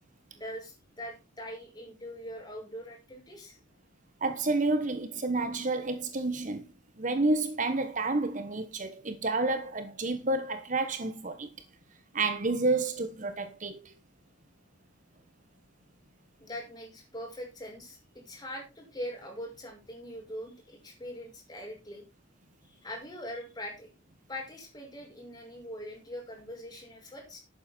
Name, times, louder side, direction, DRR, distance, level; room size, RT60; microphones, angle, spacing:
voice 1, 0.3-3.6 16.4-22.1 22.6-23.9 24.3-27.4, equal, 20° left, 5.8 m, -42 dB
voice 2, 4.2-6.7 7.0-11.5 12.1-13.9, right 2 dB, 40° right, 1.2 m, -30 dB
12.0 x 9.1 x 4.4 m
head